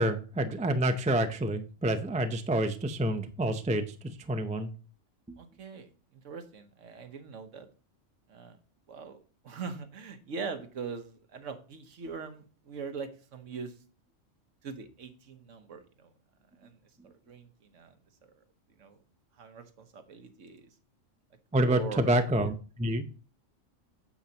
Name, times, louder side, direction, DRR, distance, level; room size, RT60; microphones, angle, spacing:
voice 1, 0.0-4.7 5.3-5.4 21.5-23.1, right 1 dB, 10° right, 8 dB, 0.3 m, -28 dB
voice 2, 5.4-7.7 8.3-8.6 8.9-9.2 9.4-13.7 14.6-16.1 16.6-16.8 17.0-18.0 18.2-18.4 18.7-19.0 19.4-20.7 21.6-22.1, right 5 dB, 70° right, 8 dB, 1.3 m, -42 dB
8.6 x 7.2 x 2.9 m, 0.37 s
omnidirectional pair, 1.3 m